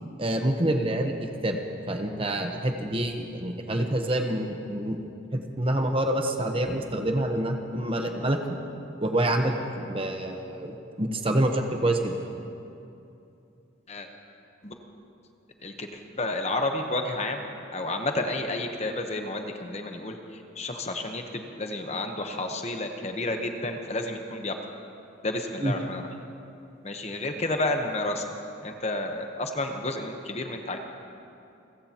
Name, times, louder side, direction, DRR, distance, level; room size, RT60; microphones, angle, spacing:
voice 1, 0.2-1.6 1.9-5.0 5.3-8.6 9.0-12.2 25.6-25.7, right 1 dB, 30° right, 4 dB, 1.0 m, -27 dB
voice 2, 15.6-24.5 25.2-26.1 26.8-28.2 28.6-30.8, left 2 dB, 35° left, 4 dB, 1.0 m, -31 dB
28.5 x 15.5 x 3.0 m, 2.7 s
head